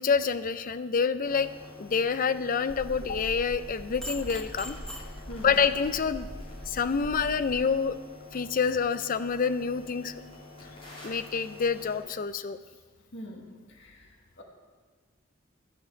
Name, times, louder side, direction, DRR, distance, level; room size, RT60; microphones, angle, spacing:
voice 1, 0.0-1.5 1.8-4.8 5.4-6.3 6.7-8.0 8.3-10.2 11.0-12.6, left 6 dB, 45° left, 13 dB, 0.5 m, -27 dB
sound 1, 1.2-12.0, left 2 dB, 30° left, 3.4 m, -48 dB
sound 2, 2.7-7.5, equal, 5° left, 0.9 m, -41 dB
voice 2, 5.3-5.6 13.1-14.1 14.4-14.5, equal, 65° left, 0 dB, 1.7 m, -43 dB
12.0 x 6.4 x 7.9 m, 1.5 s
head